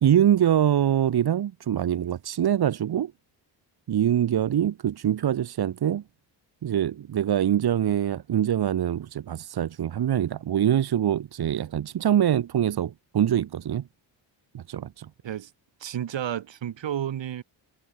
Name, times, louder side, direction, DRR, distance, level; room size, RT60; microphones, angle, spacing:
voice 1, 0.0-3.1 3.9-6.0 6.6-13.9 14.5-15.1, right 10 dB, 55° right, 1.3 m, -24 dB
voice 2, 15.8-17.4, right 10 dB, 70° right, 4.8 m, -31 dB
cardioid pair, 80°, 46 cm